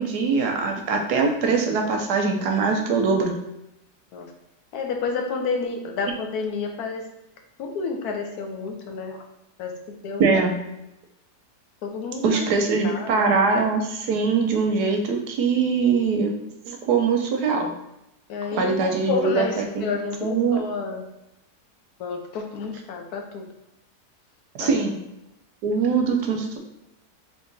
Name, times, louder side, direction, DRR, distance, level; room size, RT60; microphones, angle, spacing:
voice 1, 0.0-3.4 10.2-10.5 12.2-16.3 16.7-17.7 18.5-19.8 20.2-20.6 24.6-25.0 25.6-26.6, right 4 dB, 85° right, 3 dB, 1.3 m, -22 dB
voice 2, 4.7-7.0 7.6-9.2 9.6-9.7 10.0-10.4 11.8-13.1 18.3-21.1 22.0-23.4 24.6-24.7, left 4 dB, 75° left, 3 dB, 1.3 m, -30 dB
3.7 x 3.1 x 3.9 m, 0.88 s
omnidirectional pair, 1.7 m